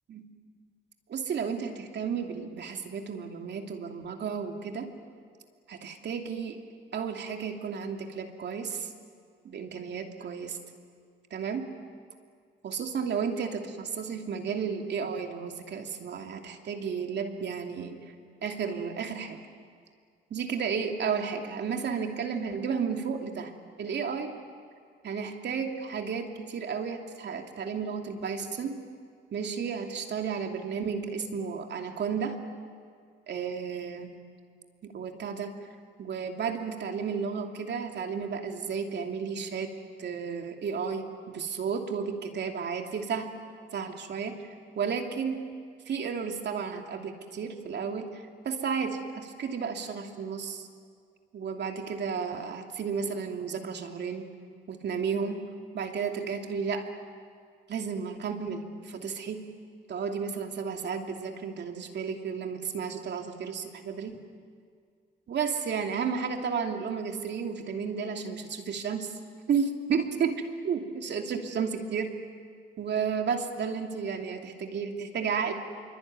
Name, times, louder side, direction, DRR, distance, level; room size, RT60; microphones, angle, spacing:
voice 1, 1.1-4.9 5.7-6.6 6.9-8.9 9.4-10.6 11.3-11.7 12.6-18.0 18.4-19.4 20.3-23.5 23.8-24.4 25.0-28.8 29.3-32.4 33.3-34.2 34.8-35.5 36.0-39.7 40.0-43.3 43.7-44.4 44.7-45.5 45.9-50.7 51.3-54.3 54.7-55.4 55.7-56.8 57.7-59.4 59.9-64.1 65.3-69.1 69.5-72.1 72.8-75.5, right 6 dB, 60° right, 4 dB, 2.8 m, -32 dB
25.5 x 24.0 x 9.6 m, 2.1 s
cardioid pair, 90°, 20 cm